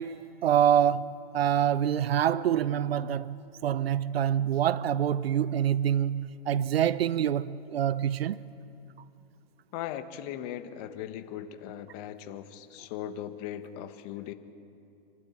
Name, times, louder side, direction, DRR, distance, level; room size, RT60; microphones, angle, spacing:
voice 1, 0.0-8.4, right 10 dB, 75° right, 0.7 m, -26 dB
voice 2, 9.7-14.3, left 10 dB, 40° left, 1.4 m, -38 dB
26.5 x 12.0 x 8.8 m
hypercardioid pair, 135°, 30 cm